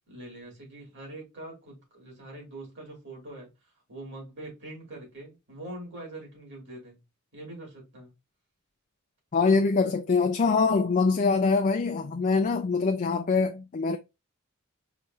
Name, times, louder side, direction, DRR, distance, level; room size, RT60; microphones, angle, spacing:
voice 1, 0.1-3.5 3.9-7.0 7.3-8.1, right 1 dB, 55° right, 3.0 m, -43 dB
voice 2, 9.3-14.0, left 4 dB, 35° left, 0.4 m, -24 dB
4.9 x 3.1 x 2.8 m
head